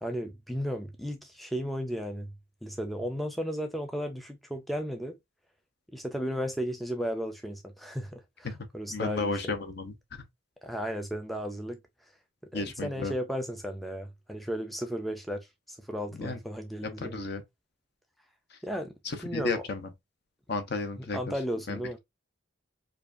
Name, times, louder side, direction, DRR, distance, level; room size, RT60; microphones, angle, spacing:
voice 1, 0.0-2.3 2.6-5.1 5.9-9.4 10.6-11.8 12.5-17.1 18.6-18.9 19.2-19.6 21.1-22.0, equal, ahead, 0.3 m, -34 dB
voice 2, 8.9-9.9 12.5-13.1 16.2-16.4 16.8-17.4 18.5-18.6 19.0-19.9 20.5-21.3 21.7-21.8, left 3 dB, 55° left, 0.7 m, -33 dB
4.8 x 2.3 x 2.5 m
head